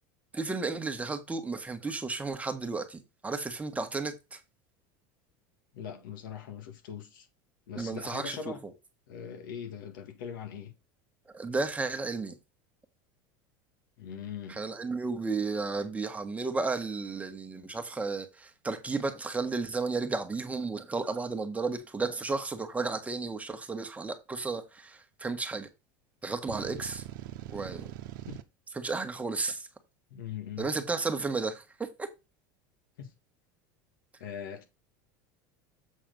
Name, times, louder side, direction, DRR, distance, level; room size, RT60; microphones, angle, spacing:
voice 1, 0.3-4.4 7.7-8.5 11.3-12.3 14.5-25.7 26.2-27.0 27.5-27.9 28.7-29.7 30.6-32.1, right 3 dB, 15° right, 1.4 m, -33 dB
voice 2, 5.7-7.3 7.7-8.6 9.1-10.7 14.0-14.6 28.3-28.4 30.1-30.7 33.0-33.1 34.2-34.6, left 8 dB, 85° left, 1.7 m, -41 dB
sound 1, 26.5-28.4, right 13 dB, 80° right, 0.9 m, -42 dB
7.6 x 4.2 x 5.3 m
supercardioid pair, 120°, 11 cm